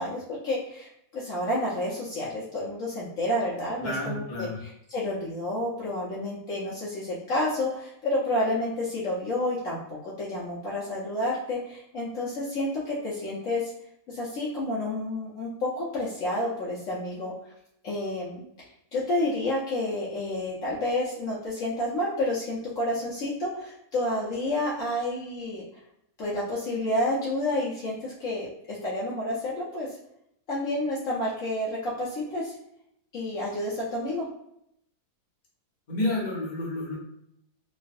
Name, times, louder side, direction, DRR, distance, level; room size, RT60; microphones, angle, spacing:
voice 1, 0.0-13.7 14.1-17.3 17.8-18.4 18.9-25.6 26.2-29.9 30.5-32.5 33.1-34.3, left 1 dB, 65° left, -6 dB, 1.0 m, -30 dB
voice 2, 3.8-4.6 35.9-37.0, left 1 dB, 35° left, -6 dB, 0.9 m, -30 dB
3.1 x 2.4 x 2.5 m, 0.76 s
omnidirectional pair, 1.6 m